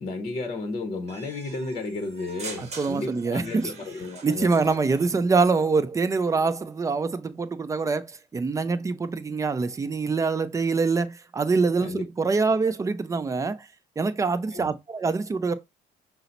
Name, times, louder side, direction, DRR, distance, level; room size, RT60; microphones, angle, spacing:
voice 1, 0.0-4.7 11.8-12.0 14.5-14.7, left 3 dB, 35° left, 0.8 m, -33 dB
sound 1, 1.1-5.1, right 4 dB, 40° right, 1.0 m, -43 dB
voice 2, 2.6-3.7 4.2-8.1 8.3-13.7 14.0-15.5, right 4 dB, 20° right, 0.5 m, -25 dB
5.6 x 2.0 x 3.9 m
cardioid pair, 110°, 17 cm